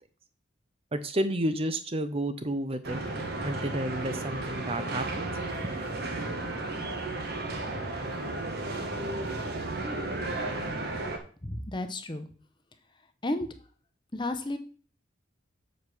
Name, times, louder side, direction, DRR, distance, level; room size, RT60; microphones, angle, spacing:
voice 1, 0.9-3.0 3.4-5.3 5.6-6.0, right 1 dB, 30° right, 10 dB, 0.6 m, -31 dB
sound 1, 2.8-11.2, right 2 dB, 50° right, 1.3 m, -33 dB
voice 2, 11.4-12.3 13.2-13.5 14.1-14.6, left 1 dB, 25° left, 8 dB, 0.8 m, -32 dB
7.2 x 5.0 x 6.1 m, 0.41 s
head